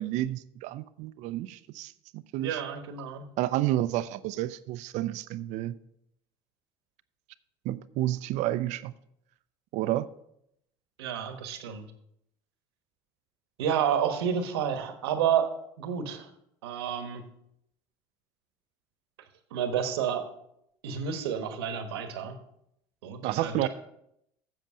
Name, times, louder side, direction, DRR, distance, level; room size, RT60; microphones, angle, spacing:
voice 1, 0.0-2.6 3.4-5.7 7.6-8.9 9.7-10.1 23.2-23.7, right 15 dB, 70° right, 0.6 m, -30 dB
voice 2, 2.4-3.2 11.0-11.9 13.6-16.3 16.6-17.3 19.5-20.3 20.8-22.4 23.0-23.7, right 8 dB, 90° right, 1.2 m, -30 dB
7.6 x 7.3 x 7.3 m
hypercardioid pair, 75°, 13 cm